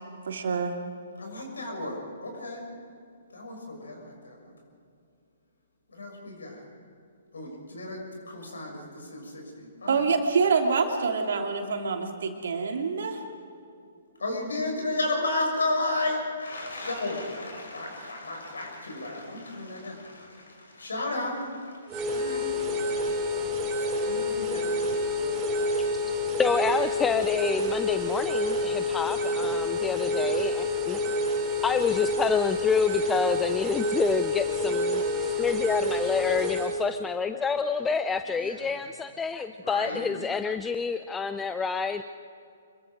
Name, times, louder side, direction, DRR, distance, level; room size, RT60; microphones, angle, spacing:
voice 1, 0.3-0.7 9.9-13.2, right 5 dB, 60° right, 3 dB, 2.8 m, -26 dB
voice 2, 1.2-2.6 3.3-4.5 5.9-6.6 7.3-10.1 14.2-21.7 22.1-22.6 24.1-24.7 38.3-38.7 39.6-40.0, left 2 dB, 70° left, 2 dB, 6.4 m, -33 dB
sound 1, 21.9-36.8, left 1 dB, 20° right, 4.2 m, -28 dB
voice 3, 26.4-31.0 31.6-42.0, left 5 dB, 10° left, 10 dB, 0.6 m, -28 dB
26.0 x 22.5 x 5.1 m, 2.5 s
figure-of-eight pair, 125°, 0 cm